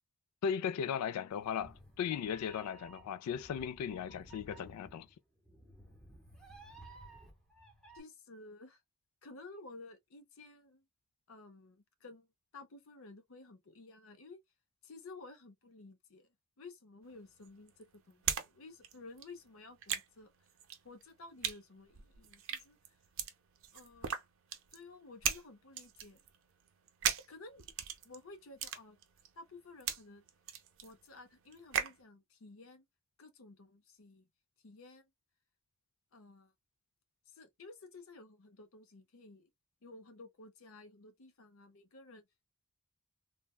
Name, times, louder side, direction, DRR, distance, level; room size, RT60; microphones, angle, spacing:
voice 1, 0.4-5.1, left 7 dB, 85° left, 0.3 m, -37 dB
Meow, 1.3-8.0, right 2 dB, 5° left, 0.7 m, -56 dB
voice 2, 7.9-8.8 9.2-10.8 11.3-12.3 12.5-14.4 14.8-20.3 20.8-23.0 23.7-24.2 24.7-26.2 27.3-27.7 28.0-29.0 29.4-30.2 30.8-32.9 33.2-34.3 34.6-35.1 36.1-36.5 37.3-39.5 39.8-42.2, left 3 dB, 65° left, 0.7 m, -54 dB
sound 1, 17.0-18.5 18.7-32.0, right 9 dB, 60° right, 0.5 m, -39 dB
3.3 x 2.1 x 2.3 m
head